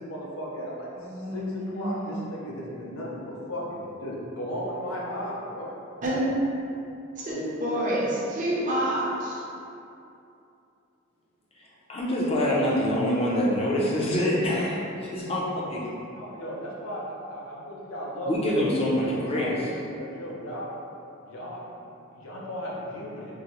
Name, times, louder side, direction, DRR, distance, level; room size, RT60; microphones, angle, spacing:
voice 1, 0.0-0.9 1.3-5.7 16.2-20.7 21.3-23.3, equal, 90° left, -4 dB, 0.6 m, -36 dB
voice 2, 1.0-2.2 6.0-6.3 7.1-9.4, right 1 dB, 40° right, -6 dB, 0.6 m, -28 dB
voice 3, 11.6-15.8 18.3-19.7, left 1 dB, 30° left, -5 dB, 0.5 m, -25 dB
3.8 x 2.0 x 2.9 m, 2.7 s
head